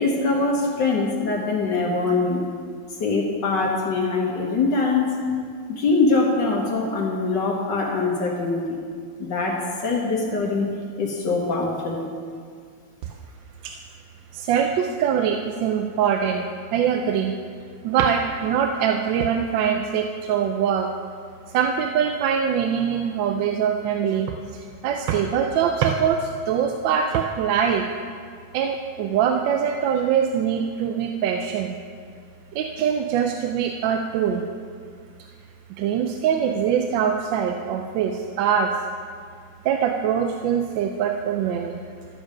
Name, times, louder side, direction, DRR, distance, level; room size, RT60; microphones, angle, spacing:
voice 1, 0.0-2.4 3.0-5.2 5.7-8.8 9.2-12.0, left 3 dB, 70° left, -1 dB, 1.8 m, -23 dB
voice 2, 14.3-17.3 17.8-20.9 21.5-27.9 28.5-31.8 32.5-34.4 35.8-38.8 39.6-41.8, right 8 dB, 90° right, 4 dB, 1.3 m, -23 dB
13.0 x 7.2 x 5.0 m, 2.1 s
omnidirectional pair, 2.0 m